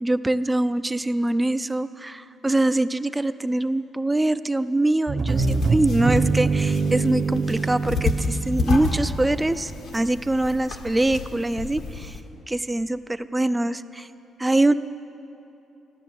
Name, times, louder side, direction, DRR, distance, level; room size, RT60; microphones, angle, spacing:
voice 1, 0.0-12.2 12.5-14.1 14.4-14.7, right 2 dB, 15° right, 13 dB, 0.4 m, -23 dB
sound 1, 5.1-9.9, right 4 dB, 45° right, 1.0 m, -25 dB
sound 2, 5.3-12.2, left 4 dB, 75° left, 1.6 m, -30 dB
15.5 x 10.5 x 7.6 m, 2.9 s
cardioid pair, 90°, 0 cm